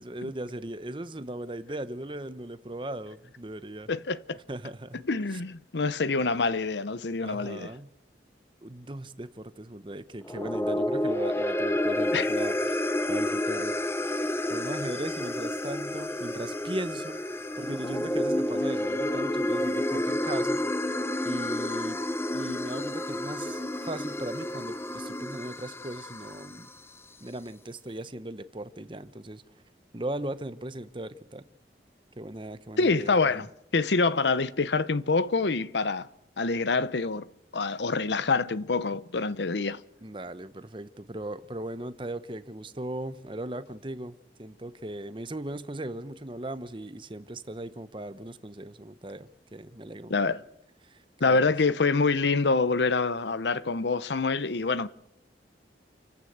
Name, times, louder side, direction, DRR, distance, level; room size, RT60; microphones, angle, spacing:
voice 1, 0.0-3.9 4.5-5.0 5.3-5.4 7.2-7.9 8.6-12.8 13.1-13.8 14.5-17.2 17.6-21.0 21.2-22.0 22.3-26.7 27.2-29.4 29.9-31.5 32.2-33.4 40.0-50.2 50.8-51.4, right 1 dB, 25° right, 0.9 m, -38 dB
voice 2, 3.9-4.4 5.0-7.7 12.1-12.3 32.8-33.5 33.7-36.1 36.4-37.3 37.5-39.8 50.1-50.4 51.2-54.9, left 4 dB, 75° left, 0.8 m, -26 dB
sound 1, 10.2-26.7, left 1 dB, 15° left, 0.7 m, -30 dB
28.5 x 15.0 x 8.0 m
head